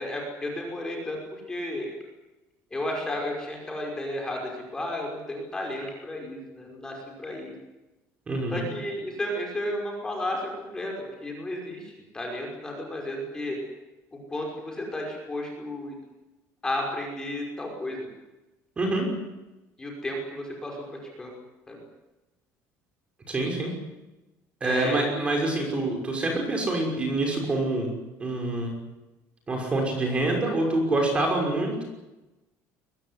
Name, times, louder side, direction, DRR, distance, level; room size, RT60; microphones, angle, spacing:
voice 1, 0.0-1.9 2.7-7.5 8.5-13.6 14.1-15.9 16.6-18.1 19.8-21.3 21.7-21.8 24.6-25.0, left 1 dB, 10° left, 0 dB, 5.7 m, -33 dB
voice 2, 8.3-8.6 18.8-19.1 23.3-23.7 24.6-27.9 28.2-28.7 29.5-31.8, right 2 dB, 20° right, 2 dB, 5.9 m, -26 dB
23.0 x 20.0 x 9.9 m, 1.0 s
cardioid pair, 175°, 6 cm